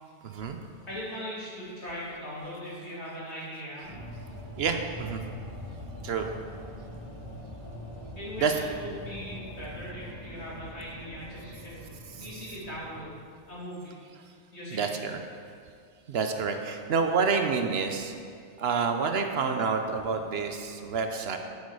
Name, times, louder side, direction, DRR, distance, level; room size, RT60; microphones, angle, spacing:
voice 1, 0.2-0.6 4.6-5.2 6.0-6.3 8.4-8.6 12.1-12.3 14.7-15.2 16.1-18.1 18.6-21.4, right 5 dB, 65° right, 5 dB, 0.9 m, -28 dB
voice 2, 0.9-4.0 8.2-11.8 12.2-13.2 13.5-14.0 14.5-14.9, equal, 65° left, -8 dB, 2.8 m, -40 dB
sound 1, 3.8-13.2, equal, 40° left, 2.7 m, -43 dB
8.6 x 8.1 x 4.8 m, 2.2 s
omnidirectional pair, 1.2 m